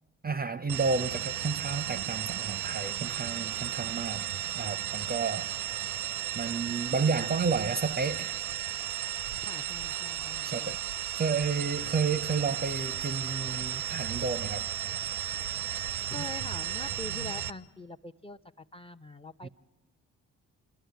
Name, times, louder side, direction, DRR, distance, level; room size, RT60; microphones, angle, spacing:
voice 1, 0.2-4.3 4.5-5.5 6.3-8.4 10.4-10.8 11.1-14.7 19.4-19.5, right 5 dB, 25° right, 0.5 m, -31 dB
sound 1, 0.7-17.5, right 11 dB, 75° right, 0.6 m, -34 dB
voice 2, 9.4-10.8 15.6-19.5, left 2 dB, 15° left, 0.6 m, -44 dB
27.0 x 11.5 x 9.3 m
hypercardioid pair, 45°, 38 cm